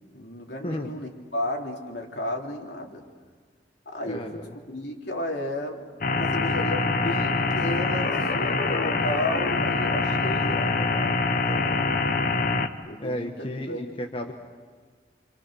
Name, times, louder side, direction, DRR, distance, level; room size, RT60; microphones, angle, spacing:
voice 1, 0.1-3.0 3.8-5.9 6.1-11.9 12.9-13.9, left 1 dB, 70° left, 0 dB, 3.3 m, -33 dB
voice 2, 4.1-4.5 12.9-14.3, left 1 dB, 30° left, 2 dB, 1.4 m, -33 dB
sound 1, 6.0-12.7, left 3 dB, 50° left, 1.2 m, -25 dB
28.5 x 27.0 x 6.4 m, 1.5 s
head